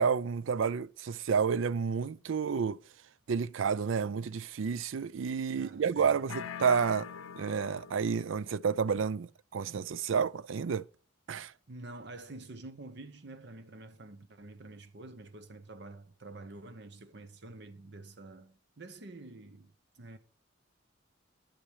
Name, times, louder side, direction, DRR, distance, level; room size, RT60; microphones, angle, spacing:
voice 1, 0.0-2.8 3.3-7.1 7.4-10.9 11.3-11.5, right 6 dB, 75° right, 0.4 m, -30 dB
voice 2, 5.6-6.2 11.7-20.2, right 2 dB, 55° right, 0.8 m, -48 dB
sound 1, 6.3-8.2, left 7 dB, 85° left, 0.6 m, -43 dB
10.0 x 8.6 x 4.8 m
head